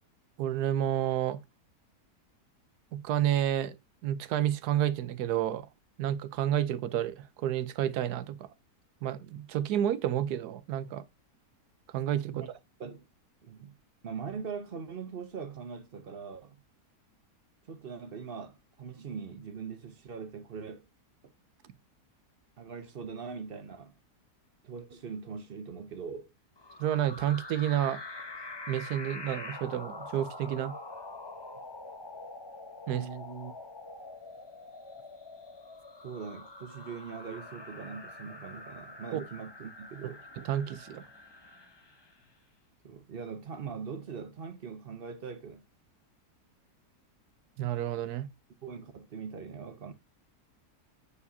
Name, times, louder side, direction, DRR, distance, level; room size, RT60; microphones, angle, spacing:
voice 1, 0.4-1.4 2.9-3.8 4.0-5.7 6.0-8.5 9.0-11.0 11.9-12.5 26.8-28.0 28.7-30.7 32.9-33.1 39.1-39.2 40.5-41.0 47.6-48.3, right 11 dB, 75° right, 1.2 m, -30 dB
voice 2, 13.4-13.7 14.0-16.6 17.7-20.9 22.6-23.9 24.6-26.3 32.9-33.5 36.0-40.2 42.8-45.6 48.6-49.9, right 6 dB, 60° right, 0.6 m, -41 dB
sound 1, 26.6-42.2, left 2 dB, 25° left, 0.6 m, -45 dB
8.4 x 4.8 x 2.7 m
omnidirectional pair, 1.8 m